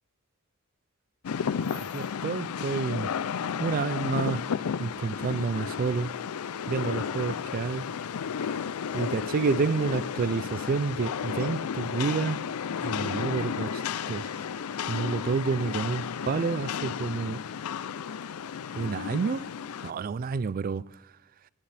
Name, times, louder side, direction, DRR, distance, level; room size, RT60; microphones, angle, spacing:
Rain, 1.2-19.9, left 7 dB, 85° left, 0.4 m, -33 dB
voice 1, 1.7-3.1 3.6-4.4 4.8-6.1 6.7-7.9 8.9-12.4 12.8-13.8 14.1-14.3 14.9-17.4 18.7-19.5 19.8-20.8, right 5 dB, 40° right, 0.3 m, -29 dB
18.0 x 13.0 x 3.4 m
head